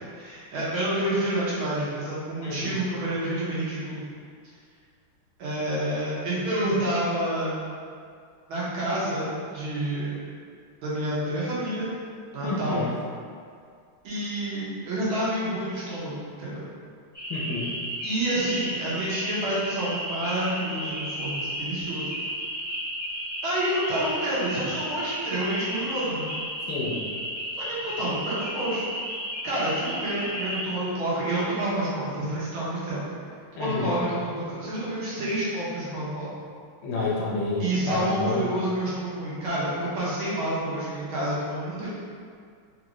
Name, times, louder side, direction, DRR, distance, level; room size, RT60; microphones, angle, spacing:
voice 1, 0.1-4.0 5.4-7.7 8.5-10.2 10.8-11.9 12.3-12.8 14.0-16.7 18.0-22.1 23.4-26.3 27.6-28.8 29.4-33.0 33.5-36.3 37.6-41.9, right 1 dB, 80° right, -9 dB, 2.0 m, -28 dB
voice 2, 12.4-12.9 17.3-17.7 26.7-27.0 33.6-33.9 36.8-38.4, left 2 dB, 70° left, -5 dB, 1.4 m, -29 dB
sound 1, 17.1-30.6, equal, 10° right, 0.9 m, -33 dB
4.6 x 2.6 x 3.0 m, 2.2 s
omnidirectional pair, 2.3 m